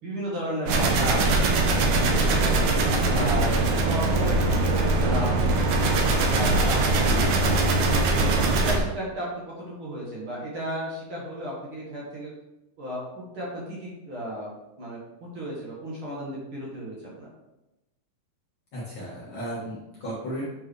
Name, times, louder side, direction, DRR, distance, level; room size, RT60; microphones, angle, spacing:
voice 1, 0.0-2.5 2.9-5.6 6.1-7.6 8.1-9.3 9.6-12.3 12.8-14.5 14.8-17.3, equal, 50° right, -6 dB, 1.7 m, -34 dB
sound 1, 0.7-8.8, right 2 dB, 70° right, 1.9 m, -22 dB
voice 2, 7.0-7.5 18.7-20.5, equal, 55° left, -7 dB, 1.3 m, -35 dB
8.2 x 4.6 x 3.3 m, 0.97 s
omnidirectional pair, 4.3 m